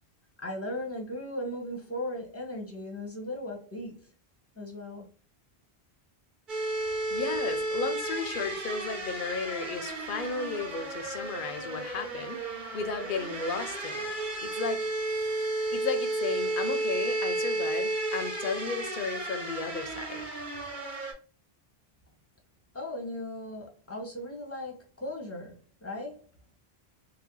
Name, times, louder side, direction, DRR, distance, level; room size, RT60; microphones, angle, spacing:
voice 1, 0.4-4.1 4.5-5.1 22.7-26.2, left 1 dB, 15° left, 0.8 m, -37 dB
sound 1, 6.5-21.1, right 2 dB, 55° right, 1.1 m, -33 dB
voice 2, 7.1-14.9 15.7-20.3, left 5 dB, 60° left, 0.7 m, -34 dB
2.8 x 2.1 x 3.6 m
omnidirectional pair, 1.0 m